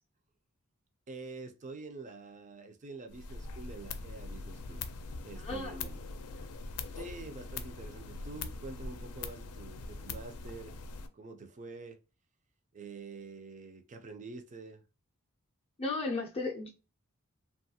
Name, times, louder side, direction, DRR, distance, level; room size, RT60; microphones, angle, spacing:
voice 1, 1.1-4.8 5.2-6.0 7.0-10.7 11.1-12.0 12.7-14.8, right 3 dB, 35° right, 0.4 m, -46 dB
sound 1, 3.1-11.1, left 4 dB, 85° left, 0.4 m, -42 dB
voice 2, 5.4-5.7 6.4-6.5 15.8-16.7, left 3 dB, 25° left, 0.4 m, -35 dB
2.9 x 2.3 x 2.7 m
head